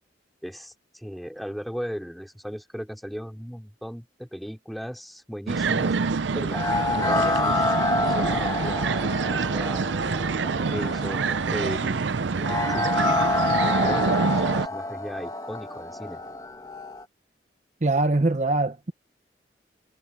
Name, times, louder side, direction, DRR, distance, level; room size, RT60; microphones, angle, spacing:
voice 1, 0.4-5.9 6.3-9.8 10.4-12.0 12.4-13.1 13.6-16.2, equal, ahead, 3.2 m, -37 dB
sound 1, 5.5-14.7, right 4 dB, 85° right, 0.6 m, -26 dB
sound 2, 6.5-17.0, left 2 dB, 20° left, 1.6 m, -28 dB
voice 2, 17.8-18.9, right 2 dB, 40° right, 0.8 m, -22 dB
head